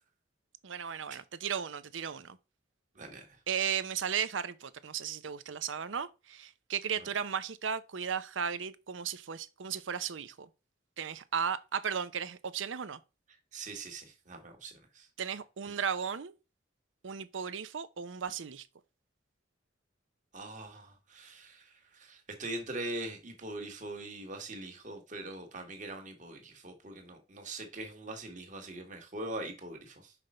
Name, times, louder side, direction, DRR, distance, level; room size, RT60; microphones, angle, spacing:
voice 1, 0.6-2.4 3.5-10.5 11.0-13.0 15.2-16.3 17.0-18.6, right 7 dB, 85° right, 0.6 m, -35 dB
voice 2, 2.9-3.4 13.5-15.1 20.3-30.1, right 2 dB, 40° right, 1.6 m, -42 dB
5.9 x 5.3 x 4.3 m
head